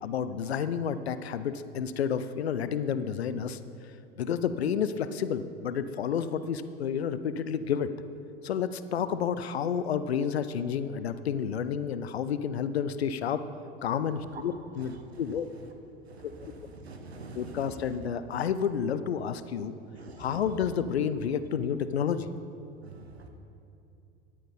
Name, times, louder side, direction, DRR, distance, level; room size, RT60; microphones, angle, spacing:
voice 1, 0.0-3.6 4.2-7.9 8.4-13.4 13.8-15.5 16.2-16.5 17.3-19.7 20.2-22.3, left 7 dB, 85° left, 13 dB, 0.6 m, -30 dB
voice 2, 16.1-17.9 19.9-20.4 22.8-23.3, right 3 dB, 90° right, 5 dB, 1.3 m, -45 dB
11.0 x 8.5 x 5.4 m, 2.8 s
hypercardioid pair, 80°, 31 cm